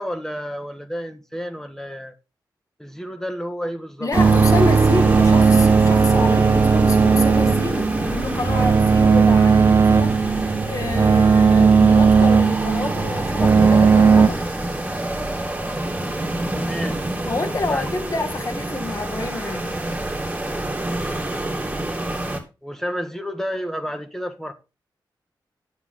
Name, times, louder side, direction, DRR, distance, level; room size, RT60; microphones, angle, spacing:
voice 1, 0.0-2.1 2.8-4.1 16.5-17.1 17.7-17.9 21.1-21.4 22.6-24.5, equal, 5° left, 1.5 m, -31 dB
voice 2, 4.0-14.4 17.3-19.8, left 2 dB, 45° left, 2.0 m, -28 dB
sound 1, 4.1-22.4, right 1 dB, 15° right, 2.8 m, -27 dB
sound 2, 4.2-14.3, right 5 dB, 35° right, 0.5 m, -16 dB
11.0 x 8.3 x 3.9 m
cardioid pair, 75°, 8 cm